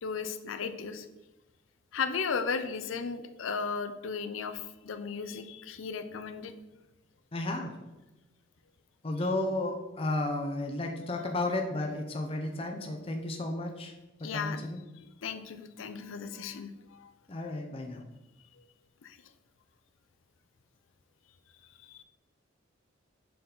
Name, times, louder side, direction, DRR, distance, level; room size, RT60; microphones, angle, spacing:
voice 1, 0.0-1.1 1.9-6.5 14.2-14.6 15.0-17.1 19.0-19.2 21.8-22.0, left 5 dB, 85° left, 10 dB, 0.5 m, -35 dB
voice 2, 7.3-7.7 9.0-13.9 14.2-14.8 17.3-18.0, left 2 dB, 30° left, 3 dB, 0.5 m, -33 dB
6.7 x 3.8 x 3.9 m, 1.0 s
head